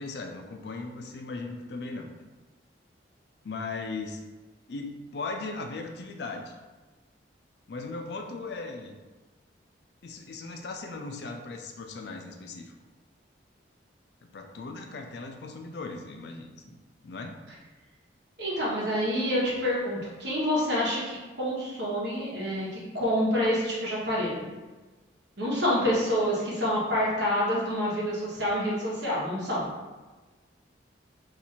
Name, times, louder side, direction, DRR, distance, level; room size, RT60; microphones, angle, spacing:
voice 1, 0.0-2.1 3.4-4.2 4.7-6.5 7.7-9.0 10.0-12.7 14.2-16.8 17.0-17.4, left 3 dB, 60° left, 4 dB, 0.4 m, -38 dB
voice 2, 18.4-24.5 25.4-29.7, equal, 70° right, -5 dB, 1.2 m, -27 dB
2.8 x 2.5 x 4.2 m, 1.2 s
head